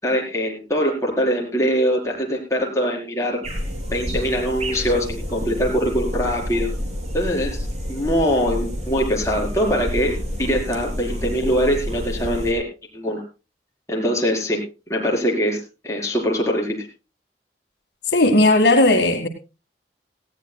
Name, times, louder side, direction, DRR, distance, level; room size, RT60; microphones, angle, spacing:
voice 1, 0.0-3.4 3.9-6.7 7.1-7.6 7.9-12.6 12.9-13.2 13.9-14.6 14.9-15.6 15.8-16.9, equal, 20° left, -1 dB, 4.7 m, -22 dB
sound 1, 3.4-12.5, equal, 40° right, 4.0 m, -29 dB
voice 2, 18.1-19.3, left 2 dB, 80° left, 4 dB, 2.0 m, -15 dB
19.0 x 15.5 x 2.3 m, 0.30 s
head